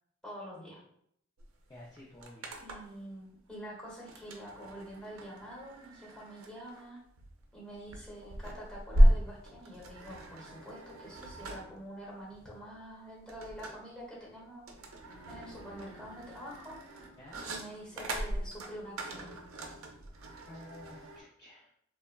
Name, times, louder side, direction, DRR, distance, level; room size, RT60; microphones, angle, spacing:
voice 1, 0.2-0.8 2.6-7.0 7.5-14.7 15.3-16.8 17.4-19.4, equal, 5° left, -5 dB, 0.9 m, -46 dB
sound 1, 1.4-1.5 1.7-3.0 4.1-21.2, equal, 85° right, 0.4 m, -33 dB
voice 2, 1.7-2.6 17.2-17.6 20.5-21.7, left 1 dB, 20° left, -5 dB, 0.4 m, -51 dB
Bowed string instrument, 14.8-19.9, right 2 dB, 85° left, 0.4 m, -58 dB
3.2 x 2.0 x 2.2 m, 0.70 s
head